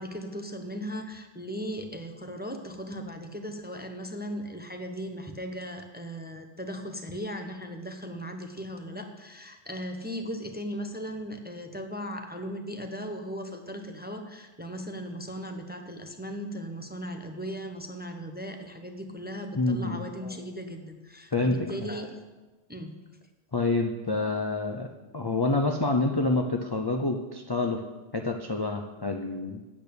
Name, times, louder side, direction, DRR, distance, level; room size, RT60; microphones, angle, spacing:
voice 1, 0.0-22.2 22.7-23.0, equal, 10° right, 5 dB, 0.6 m, -37 dB
voice 2, 19.6-20.1 21.3-21.9 23.5-27.8 28.1-29.6, left 2 dB, 30° left, 3 dB, 0.5 m, -27 dB
8.6 x 8.3 x 6.8 m, 1.2 s
omnidirectional pair, 1.3 m